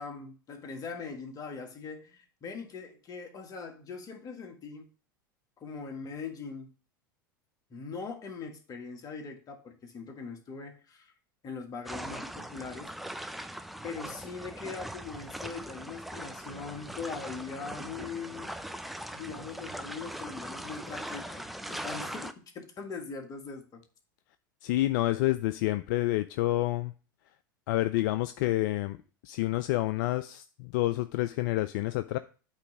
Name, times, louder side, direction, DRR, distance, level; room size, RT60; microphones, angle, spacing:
voice 1, 0.0-4.9 5.6-6.7 7.7-11.1 11.4-12.9 13.8-18.5 19.1-23.8, left 5 dB, 35° left, 4 dB, 1.6 m, -41 dB
sound 1, 11.9-22.3, right 1 dB, ahead, 0.5 m, -40 dB
voice 2, 24.6-26.9 27.7-29.0 29.2-32.2, left 16 dB, 65° left, 12 dB, 0.4 m, -28 dB
8.3 x 3.1 x 6.0 m, 0.38 s
hypercardioid pair, 90°, 11 cm